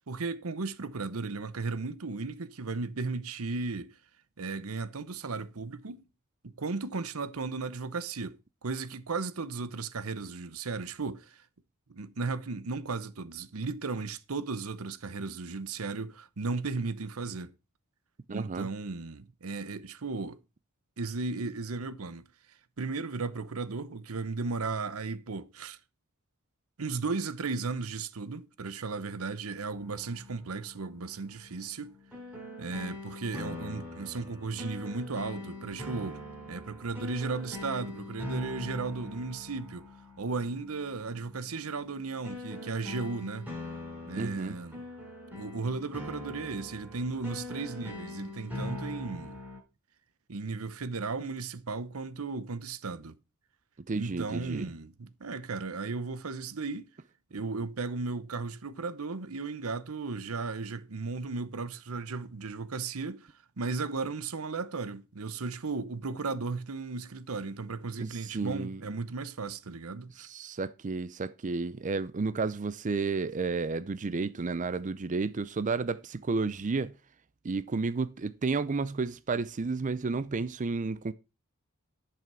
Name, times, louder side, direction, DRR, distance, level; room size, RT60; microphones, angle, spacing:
voice 1, 0.1-4.0 4.4-6.1 6.4-11.4 11.9-17.5 18.3-20.4 21.0-22.3 22.8-25.8 26.8-32.0 32.6-36.2 36.5-39.9 40.2-43.5 44.0-44.8 45.3-49.4 50.3-53.1 53.9-56.9 57.3-70.3, right 4 dB, 85° right, 0.9 m, -35 dB
voice 2, 18.3-18.7 44.2-44.5 53.9-54.7 68.0-68.8 70.2-77.0 77.4-81.1, right 4 dB, 35° right, 0.5 m, -32 dB
sound 1, 29.7-49.6, left 1 dB, 5° right, 6.6 m, -42 dB
10.5 x 5.9 x 6.1 m
head